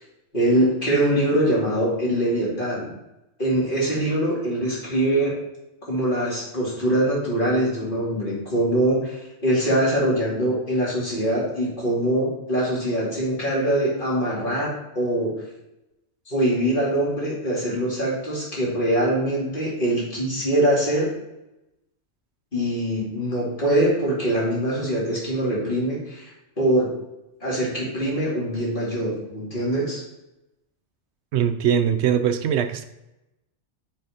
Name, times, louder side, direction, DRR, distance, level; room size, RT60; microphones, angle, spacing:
voice 1, 0.3-2.9 3.4-5.3 5.9-15.3 16.3-21.1 22.5-26.3 26.6-26.9 27.4-30.0, right 1 dB, 45° left, -6 dB, 2.7 m, -23 dB
voice 2, 31.3-32.8, right 8 dB, 70° right, 9 dB, 0.8 m, -21 dB
6.6 x 4.1 x 5.0 m, 0.95 s
omnidirectional pair, 1.3 m